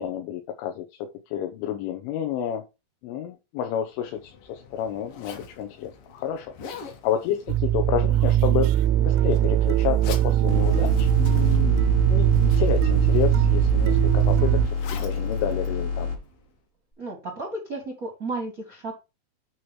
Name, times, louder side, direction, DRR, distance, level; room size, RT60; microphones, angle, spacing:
voice 1, 0.0-2.6 3.0-8.7 9.0-16.1, left 9 dB, 80° left, 5 dB, 3.3 m, -30 dB
Zipper (clothing), 3.9-16.6, left 6 dB, 65° left, 2.2 m, -46 dB
sound 1, 7.5-14.7, right 12 dB, 90° right, 3.1 m, -20 dB
sound 2, 10.5-16.2, left 5 dB, 50° left, 0.9 m, -29 dB
voice 2, 17.0-18.9, right 2 dB, 75° right, 0 dB, 0.8 m, -33 dB
9.2 x 3.2 x 6.0 m, 0.27 s
omnidirectional pair, 5.4 m